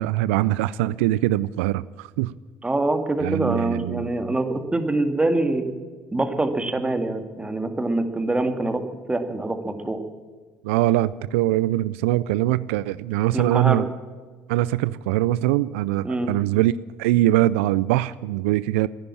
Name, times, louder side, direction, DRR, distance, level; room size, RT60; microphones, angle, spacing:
voice 1, 0.0-2.3 3.2-4.1 10.6-13.9 14.5-16.7 17.0-18.9, right 15 dB, 80° right, 18 dB, 0.3 m, -22 dB
voice 2, 2.6-5.7 6.1-8.8 9.1-10.0 13.3-13.8 16.0-16.3, right 2 dB, 15° right, 8 dB, 2.0 m, -24 dB
14.0 x 10.5 x 8.6 m, 1.5 s
hypercardioid pair, 70°, 7 cm